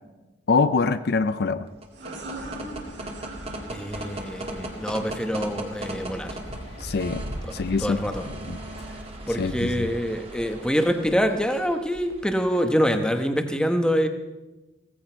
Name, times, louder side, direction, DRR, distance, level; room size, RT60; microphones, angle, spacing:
voice 1, 0.5-1.7 6.8-7.2 7.5-8.0 8.5-8.6 9.3-9.9, left 4 dB, 55° left, 12 dB, 0.5 m, -24 dB
sound 1, 1.7-12.4, right 1 dB, 30° right, 1.8 m, -37 dB
sound 2, 1.9-7.3, right 2 dB, 75° right, 5.4 m, -42 dB
voice 2, 3.7-6.4 7.4-7.5 7.8-8.3 9.2-14.1, equal, 5° left, 6 dB, 1.0 m, -25 dB
sound 3, 3.9-10.8, left 2 dB, 80° left, 4.3 m, -48 dB
16.5 x 15.0 x 4.5 m, 1.1 s
head